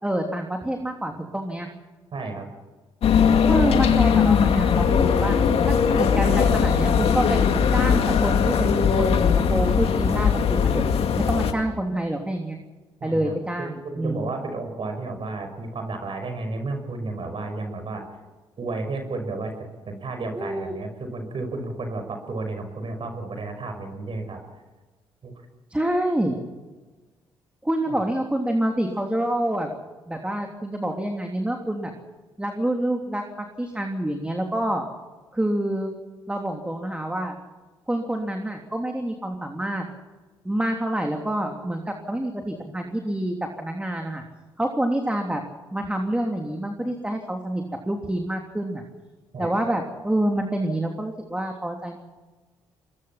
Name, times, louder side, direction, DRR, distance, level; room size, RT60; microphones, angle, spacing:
voice 1, 0.0-1.7 3.5-5.4 5.7-7.4 7.7-10.8 11.3-12.6 13.0-14.3 20.4-20.7 25.7-26.4 27.6-29.7 30.1-31.9 32.4-34.8 35.3-35.9 36.3-37.3 37.9-39.8 40.4-44.2 44.6-45.4 45.7-48.8 49.4-52.0, right 1 dB, 10° right, 3 dB, 3.2 m, -27 dB
voice 2, 2.1-2.5 13.0-18.0 18.6-24.4 25.2-25.3 27.9-28.0 49.3-49.5, right 3 dB, 55° right, 6 dB, 5.9 m, -32 dB
sound 1, 3.0-11.5, left 6 dB, 65° left, 2.2 m, -20 dB
22.0 x 21.5 x 5.9 m, 1.3 s
supercardioid pair, 50°, 11 cm